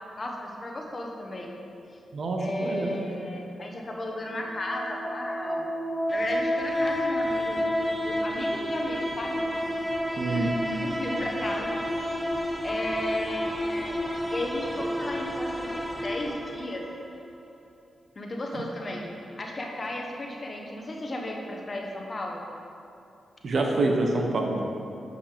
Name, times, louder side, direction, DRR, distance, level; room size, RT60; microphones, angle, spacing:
voice 1, 0.2-1.5 2.4-5.7 6.1-7.6 8.0-9.5 10.2-12.3 12.6-14.0 14.3-15.7 16.0-16.9 18.1-19.1 19.4-22.4, left 1 dB, 45° left, 0 dB, 1.1 m, -34 dB
voice 2, 2.1-3.1 10.2-10.5 18.5-18.6 23.4-24.6, right 2 dB, 65° right, 1 dB, 0.9 m, -26 dB
sound 1, 4.1-17.1, equal, ahead, 0.7 m, -30 dB
8.2 x 5.2 x 3.4 m, 2.6 s
cardioid pair, 55°, 0 cm